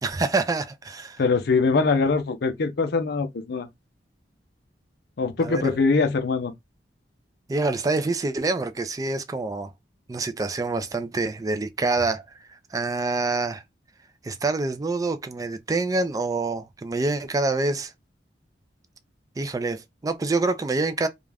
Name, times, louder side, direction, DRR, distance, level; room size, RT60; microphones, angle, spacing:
voice 1, 0.0-1.2 5.4-5.8 7.5-9.7 10.1-12.2 12.5-13.6 14.2-17.9 19.4-21.1, right 3 dB, 20° right, 0.3 m, -26 dB
voice 2, 1.2-3.7 5.2-6.5, left 4 dB, 65° left, 0.5 m, -22 dB
2.4 x 2.1 x 3.2 m
head